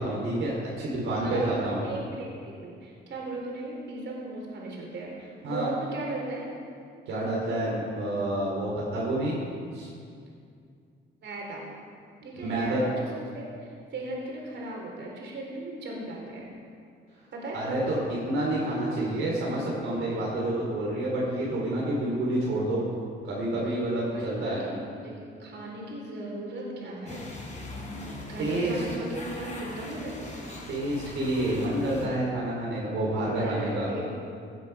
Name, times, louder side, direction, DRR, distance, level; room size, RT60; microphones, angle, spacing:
voice 1, 0.0-1.8 5.4-5.7 7.1-9.4 9.7-9.9 12.4-12.8 17.5-22.8 23.2-24.6 28.4-28.8 30.7-33.9, right 1 dB, 85° right, -5 dB, 3.0 m, -28 dB
voice 2, 1.2-6.5 11.2-11.6 12.2-13.1 13.3-16.5 17.3-17.7 24.0-27.6 28.3-30.5 33.4-34.1, right 2 dB, 65° right, -2 dB, 3.9 m, -37 dB
sound 1, 27.1-32.1, left 2 dB, 35° left, 3.9 m, -41 dB
17.0 x 8.3 x 5.7 m, 2.3 s
cardioid pair, 90°, 20 cm